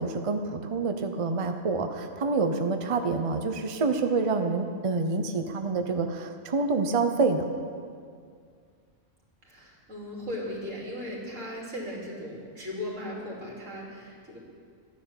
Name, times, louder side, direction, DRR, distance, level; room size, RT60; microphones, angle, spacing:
voice 1, 0.0-7.4, right 4 dB, 30° right, 6 dB, 0.7 m, -27 dB
voice 2, 9.4-14.4, left 1 dB, 85° right, -4 dB, 3.4 m, -37 dB
13.5 x 10.5 x 7.1 m, 2.2 s
omnidirectional pair, 1.3 m